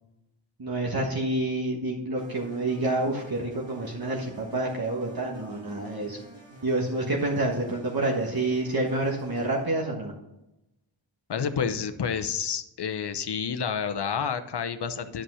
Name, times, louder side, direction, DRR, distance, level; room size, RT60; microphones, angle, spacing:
voice 1, 0.6-6.2 6.6-10.1, right 2 dB, 50° right, -1 dB, 1.5 m, -28 dB
sound 1, 2.2-9.8, right 3 dB, 70° right, 3.0 m, -48 dB
voice 2, 11.3-15.2, left 7 dB, 60° left, 11 dB, 0.8 m, -29 dB
10.0 x 5.5 x 5.6 m, 0.92 s
wide cardioid pair, 65°, 46 cm